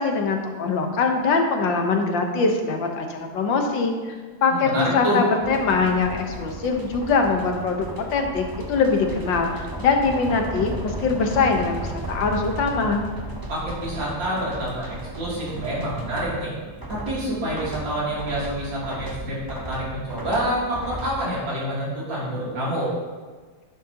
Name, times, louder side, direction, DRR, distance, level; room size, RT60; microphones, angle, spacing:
voice 1, 0.0-4.1 4.4-13.0, left 4 dB, 80° left, 3 dB, 1.8 m, -22 dB
voice 2, 4.5-5.2 13.5-16.5 16.9-22.9, right 1 dB, 85° right, -7 dB, 3.7 m, -27 dB
sound 1, 5.4-21.2, right 1 dB, 35° right, 0.3 m, -35 dB
11.0 x 10.5 x 2.9 m, 1.4 s
omnidirectional pair, 2.0 m